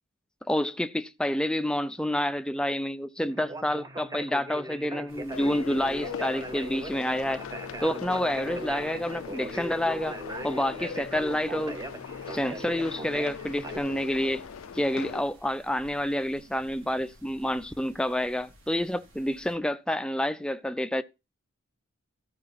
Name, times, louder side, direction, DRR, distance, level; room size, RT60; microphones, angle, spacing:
voice 1, 0.5-7.4 7.8-10.2 10.4-11.8 12.3-14.5 14.7-21.0, left 1 dB, 5° left, 0.4 m, -28 dB
Conversation, 3.3-13.8, right 1 dB, 15° right, 0.8 m, -39 dB
sound 1, 5.1-19.6, equal, 70° right, 3.7 m, -55 dB
sound 2, 5.3-15.2, left 7 dB, 85° left, 0.4 m, -40 dB
13.0 x 5.0 x 5.7 m
head